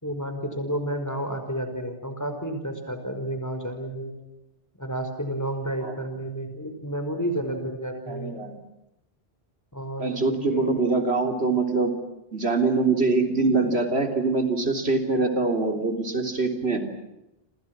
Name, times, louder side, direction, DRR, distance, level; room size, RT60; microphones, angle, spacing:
voice 1, 0.0-4.2 4.8-8.3 9.7-10.8, right 1 dB, 15° left, 6 dB, 5.2 m, -31 dB
voice 2, 8.1-8.6 10.0-11.9 12.3-16.8, right 3 dB, 85° right, 5 dB, 3.7 m, -24 dB
29.5 x 27.5 x 6.1 m, 0.91 s
omnidirectional pair, 1.0 m